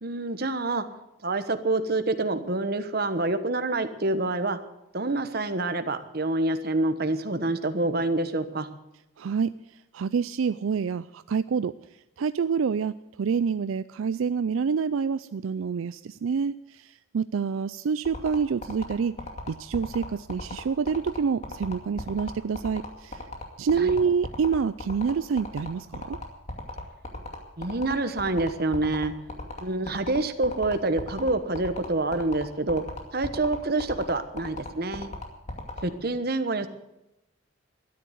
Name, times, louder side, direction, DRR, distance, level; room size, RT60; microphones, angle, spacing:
voice 1, 0.0-0.8 1.2-4.6 4.9-8.7 23.8-23.9 27.6-29.1 29.6-32.8 33.1-35.1 35.8-36.7, right 2 dB, 50° right, 9 dB, 1.2 m, -27 dB
voice 2, 9.2-9.5 9.9-11.7 12.2-19.2 19.5-23.2 23.6-26.2, right 6 dB, 80° right, 13 dB, 0.4 m, -27 dB
sound 1, 18.0-35.8, left 2 dB, 35° left, 2.4 m, -36 dB
13.0 x 10.5 x 7.9 m, 0.88 s
head